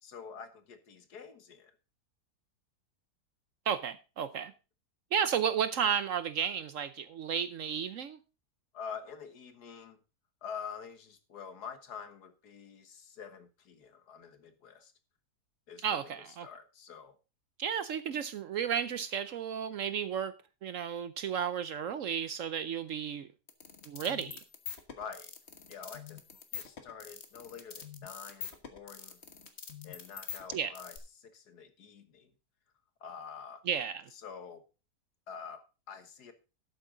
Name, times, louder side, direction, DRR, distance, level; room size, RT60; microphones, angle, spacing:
voice 1, 0.0-1.7 8.7-10.0 10.4-14.9 15.7-17.2 25.0-25.3 25.7-26.2 26.5-29.2 29.8-32.3 33.0-33.6 34.1-34.6 35.3-36.3, left 6 dB, 75° left, 1.9 m, -47 dB
voice 2, 3.7-4.5 5.1-8.2 15.8-16.5 17.6-20.3 20.6-23.3 23.9-24.4 30.5-30.7 33.7-34.0, right 8 dB, 65° right, 0.9 m, -33 dB
sound 1, 23.5-31.0, left 7 dB, 45° left, 1.5 m, -44 dB
12.0 x 8.2 x 3.8 m
omnidirectional pair, 1.7 m